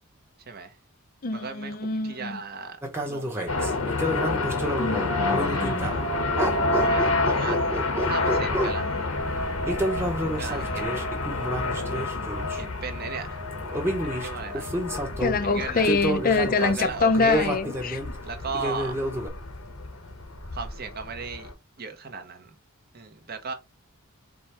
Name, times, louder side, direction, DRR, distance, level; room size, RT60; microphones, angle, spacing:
voice 1, 0.5-0.8 1.3-2.8 3.0-3.8 5.4-5.7 6.7-9.1 10.3-11.1 12.5-13.4 14.0-14.7 15.4-15.9 16.5-17.5 18.2-19.0 20.5-21.5 21.8-22.5 22.9-23.5, right 5 dB, 45° right, 0.9 m, -36 dB
voice 2, 1.2-2.4 4.8-5.9 14.9-18.0, left 4 dB, 40° left, 0.5 m, -25 dB
sound 1, 2.8-6.1 6.4-8.8 9.7-12.6 13.5-15.4 15.8-18.1 18.5-19.3, equal, 10° right, 1.0 m, -30 dB
sound 2, 3.5-21.5, left 2 dB, 75° left, 1.2 m, -29 dB
5.0 x 2.3 x 4.2 m
head